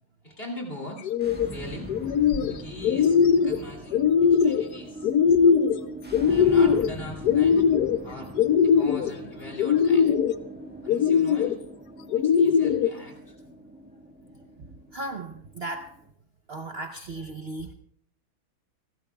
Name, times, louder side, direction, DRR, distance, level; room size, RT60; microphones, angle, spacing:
voice 1, 0.2-1.1 1.5-1.9 2.5-5.1 6.3-7.6 8.0-8.3 8.6-10.1 10.8-11.6 12.1-13.3, left 1 dB, 25° left, 0 dB, 3.0 m, -41 dB
sound 1, 1.0-1.5 1.9-2.5 2.8-3.6 3.9-4.6 5.0-5.8 6.1-6.9 7.2-8.0 8.4-9.1 9.6-10.3 10.9-11.5 12.1-12.9, left 7 dB, 70° left, 1.0 m, -20 dB
sound 2, 1.1-16.1, right 1 dB, 5° right, 1.1 m, -41 dB
voice 2, 14.9-15.9 16.5-17.7, right 2 dB, 85° right, 5 dB, 0.5 m, -36 dB
29.5 x 12.0 x 2.3 m, 0.65 s
omnidirectional pair, 2.3 m